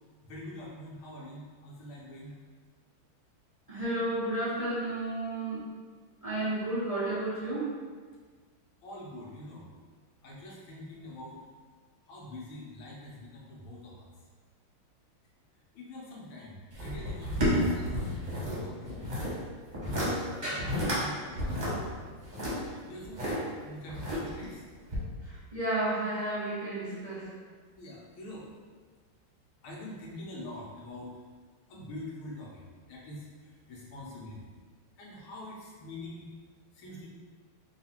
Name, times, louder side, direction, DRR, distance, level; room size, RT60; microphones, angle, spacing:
voice 1, 0.3-2.3 8.8-9.7 10.2-11.4 12.1-14.1 15.7-17.9 18.4-19.3 20.0-20.2 20.4-21.7 22.4-22.6 22.9-24.6 27.7-28.4 29.6-31.1 31.7-33.3 33.7-34.5 35.0-36.3 36.8-37.1, left 1 dB, 85° left, -4 dB, 1.8 m, -44 dB
voice 2, 3.7-5.6 6.2-7.7 25.2-27.3, right 1 dB, 75° right, -12 dB, 0.3 m, -32 dB
sound 1, 16.7-18.6 18.8-19.3 19.7-20.1 20.4-21.0 21.3-23.3 23.9-24.5 24.9-25.0, equal, 30° right, 0.9 m, -31 dB
3.9 x 2.4 x 4.3 m, 1.5 s
omnidirectional pair, 2.3 m